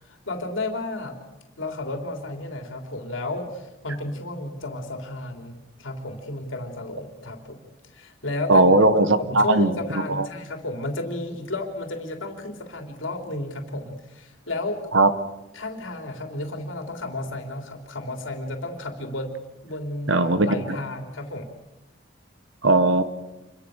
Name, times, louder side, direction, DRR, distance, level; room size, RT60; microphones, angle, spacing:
voice 1, 0.0-1.2 1.6-7.6 7.9-8.7 9.1-14.8 15.5-19.3 19.6-21.5, left 2 dB, 80° left, 4 dB, 3.4 m, -32 dB
voice 2, 8.5-9.7 10.1-10.3 14.9-15.1 20.1-20.5 22.6-23.0, right 2 dB, 75° right, 11 dB, 1.7 m, -18 dB
28.5 x 24.0 x 6.6 m, 0.98 s
head